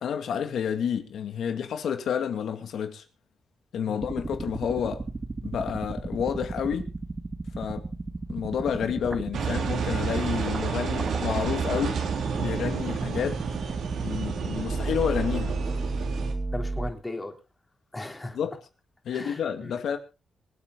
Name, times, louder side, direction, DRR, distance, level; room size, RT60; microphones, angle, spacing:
voice 1, 0.0-3.0 3.7-5.0 5.4-6.9 7.6-7.9 8.3-12.0 12.4-13.4 14.0-15.6 18.3-18.5 19.0-20.0, left 8 dB, 80° left, 2.4 m, -29 dB
sound 1, 4.0-16.9, right 3 dB, 25° right, 1.8 m, -34 dB
Engine, 9.3-16.3, right 6 dB, 80° right, 3.5 m, -30 dB
voice 2, 16.5-17.3 17.9-18.4 19.1-19.8, left 2 dB, 20° left, 3.8 m, -37 dB
25.5 x 8.6 x 4.0 m
cardioid pair, 85°, 0 cm